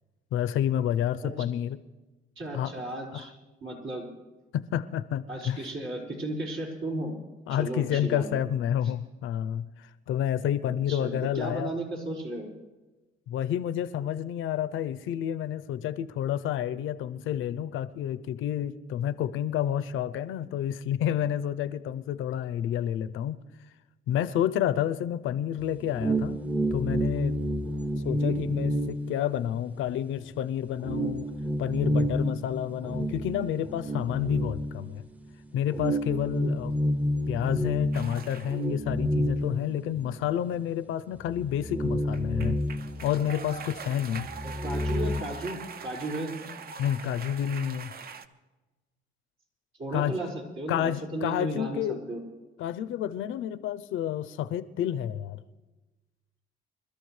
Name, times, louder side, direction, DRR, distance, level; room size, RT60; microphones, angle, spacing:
voice 1, 0.3-1.8 2.5-2.7 3.1-3.3 4.5-5.6 7.5-9.7 10.1-11.7 13.3-23.4 24.1-26.4 26.7-27.4 28.0-31.3 31.6-35.0 35.5-36.7 37.3-42.6 43.0-44.3 46.8-47.9 49.9-50.2 50.7-52.0 52.6-55.4, left 10 dB, 85° left, 14 dB, 0.6 m, -29 dB
voice 2, 2.3-4.1 5.3-7.1 7.5-8.2 10.7-12.5 28.0-28.3 44.4-46.3 49.8-52.2, right 1 dB, 70° right, -2 dB, 5.0 m, -35 dB
sound 1, 25.6-29.9 30.3-30.4 30.8-35.2 35.7-40.4 40.7-40.8 41.3-43.7 44.0-45.2, equal, 5° right, 0.7 m, -30 dB
sound 2, 37.9-38.6 42.0-48.3, right 6 dB, 50° right, 0.7 m, -42 dB
26.0 x 13.0 x 3.2 m, 1.2 s
cardioid pair, 90°, 20 cm